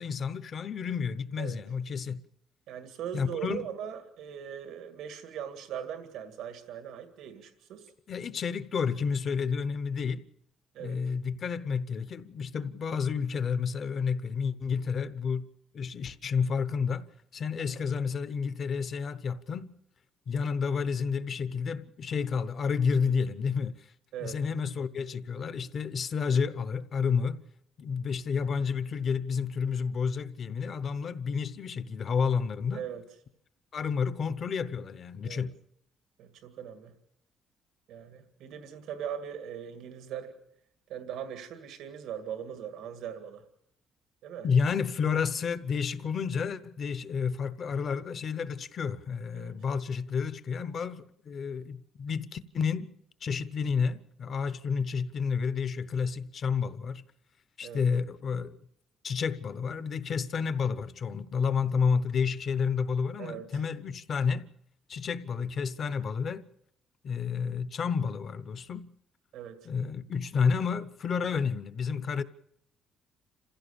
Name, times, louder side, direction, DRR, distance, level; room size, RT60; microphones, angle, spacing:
voice 1, 0.0-2.2 3.1-3.7 8.1-10.2 10.8-15.4 15.7-19.7 20.3-23.9 24.2-27.4 27.8-32.8 33.7-35.5 44.4-52.9 53.2-57.0 57.6-58.6 59.0-64.5 64.9-66.5 67.0-68.9 69.6-72.2, left 6 dB, 40° left, 0.8 m, -30 dB
voice 2, 2.7-7.9 10.7-11.0 24.1-24.4 32.7-33.0 35.2-35.4 36.2-37.0 37.9-40.4 40.9-43.4 44.2-44.5 49.3-49.5 57.6-57.9 63.2-63.6 69.3-69.6, right 9 dB, 85° right, 2.0 m, -40 dB
27.5 x 16.0 x 6.9 m
cardioid pair, 170°, 0 cm